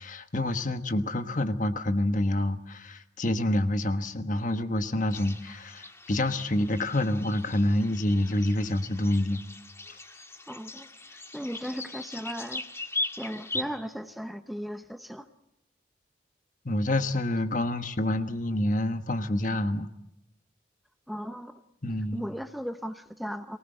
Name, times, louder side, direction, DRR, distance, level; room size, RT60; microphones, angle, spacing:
voice 1, 0.0-9.4 16.6-19.9 21.8-22.2, left 1 dB, 45° left, 9 dB, 1.3 m, -27 dB
sound 1, 5.1-13.6, left 2 dB, 15° left, 1.7 m, -39 dB
voice 2, 10.5-12.6 13.2-15.3 21.1-21.6 22.1-23.6, equal, ahead, 9 dB, 0.8 m, -37 dB
24.0 x 18.5 x 7.8 m, 0.83 s
head